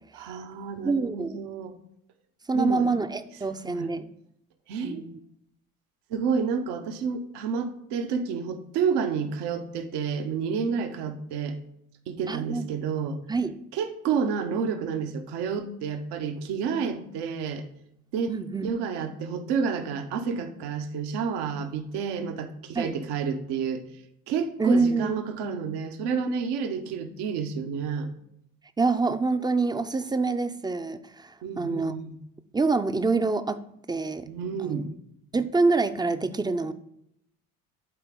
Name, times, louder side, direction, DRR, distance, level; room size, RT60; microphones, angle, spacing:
voice 1, 0.1-1.7 2.5-2.9 3.6-3.9 4.7-5.1 6.1-11.6 12.1-13.2 13.7-17.7 18.1-18.4 18.6-23.8 24.3-28.1 31.4-32.1 34.3-35.0, right 6 dB, 65° right, 7 dB, 1.0 m, -30 dB
voice 2, 0.8-1.4 2.5-4.1 4.8-5.2 12.3-12.7 13.3-13.5 18.3-18.7 22.7-22.9 24.6-25.2 28.8-31.9 32.5-33.6 33.9-34.3 34.6-34.8 35.3-36.7, right 3 dB, 10° right, 10 dB, 0.5 m, -26 dB
12.0 x 4.0 x 3.7 m, 0.75 s
hypercardioid pair, 55°, 44 cm